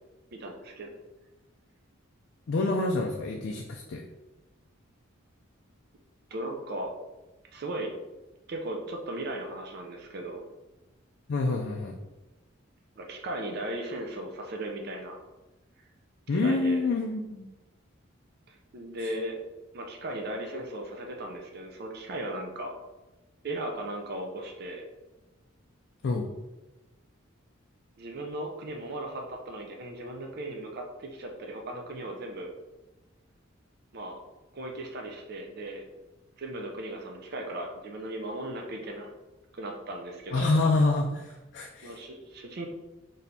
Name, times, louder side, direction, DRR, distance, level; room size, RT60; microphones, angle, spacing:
voice 1, 0.3-0.9 6.3-6.9 7.5-7.9 8.5-10.4 13.0-15.2 16.3-16.8 18.5-19.4 19.7-22.7 23.4-24.8 28.0-32.5 33.9-34.2 34.5-35.9 36.4-39.1 39.5-40.5 41.8-42.7, right 1 dB, 50° right, 1 dB, 0.5 m, -37 dB
voice 2, 2.5-4.0 11.3-12.0 16.3-17.5 26.0-26.3 40.3-41.9, left 3 dB, 55° left, 1 dB, 0.3 m, -27 dB
4.2 x 3.2 x 2.7 m, 1.1 s
head